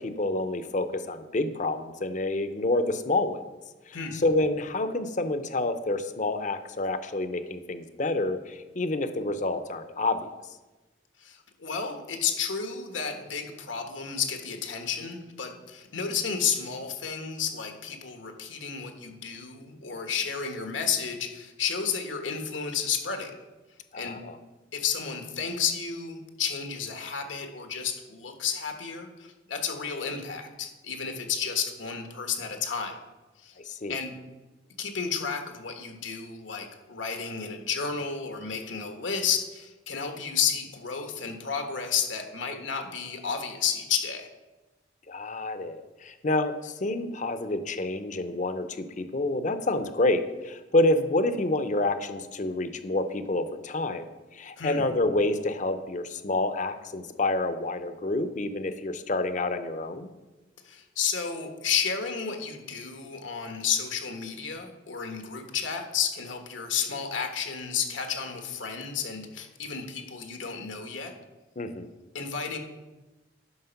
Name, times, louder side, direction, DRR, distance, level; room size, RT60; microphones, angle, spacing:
voice 1, 0.0-3.4 3.9-10.3 23.9-24.4 33.6-34.0 45.1-54.1 54.3-60.1 71.6-71.9, left 2 dB, 40° left, 10 dB, 0.7 m, -28 dB
voice 2, 11.2-23.3 23.9-24.2 24.7-33.0 33.4-33.5 33.9-34.1 34.8-44.3 54.6-54.9 60.6-71.1 72.1-72.6, left 7 dB, 80° left, 5 dB, 1.4 m, -32 dB
9.5 x 6.0 x 5.8 m, 1.1 s
head